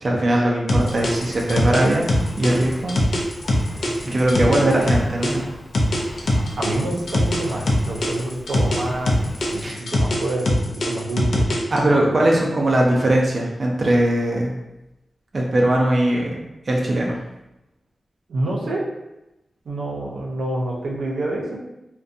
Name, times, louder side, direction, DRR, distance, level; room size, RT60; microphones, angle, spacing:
voice 1, 0.0-3.0 4.0-5.5 9.6-9.8 11.7-14.5 15.3-17.1, right 1 dB, 40° right, -2 dB, 0.4 m, -20 dB
sound 1, 0.7-5.3 5.7-8.8 9.1-11.8, left 1 dB, 75° left, 0.4 m, -21 dB
Engine, 0.8-9.7, equal, 15° left, 0.6 m, -38 dB
voice 2, 6.6-9.1 9.5-11.5 11.8-12.0 18.3-18.8 19.7-21.6, right 2 dB, 90° right, -3 dB, 0.5 m, -27 dB
2.5 x 2.1 x 2.6 m, 0.93 s
wide cardioid pair, 130°, 0 cm